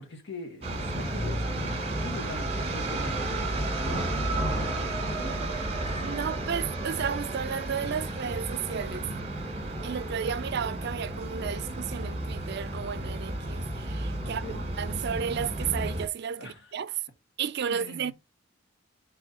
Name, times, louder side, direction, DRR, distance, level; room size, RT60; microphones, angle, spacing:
voice 1, 0.0-6.0 6.2-6.5 14.2-14.6 16.4-16.7 17.7-18.1, left 2 dB, 60° left, 1.7 m, -42 dB
sound 1, 0.6-16.1, right 1 dB, 30° right, 1.4 m, -32 dB
voice 2, 6.0-9.1 9.8-16.9 17.4-18.1, right 7 dB, 55° right, 0.4 m, -33 dB
4.4 x 4.2 x 5.4 m
head